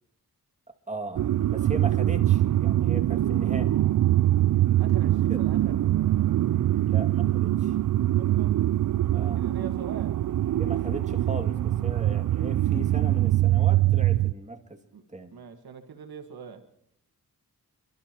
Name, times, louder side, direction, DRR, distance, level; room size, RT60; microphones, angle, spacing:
voice 1, 0.9-3.7 5.3-5.4 6.9-7.7 9.1-9.4 10.6-14.8 15.1-15.3, right 2 dB, 20° right, 3 dB, 2.3 m, -37 dB
sound 1, 1.1-14.3, right 14 dB, 60° right, 0.4 m, -23 dB
voice 2, 4.8-5.8 8.1-8.5 9.0-10.2 14.9-15.0 15.3-16.6, right 6 dB, 85° right, 7 dB, 1.6 m, -42 dB
29.0 x 12.5 x 3.0 m, 0.76 s
cardioid pair, 55°, 36 cm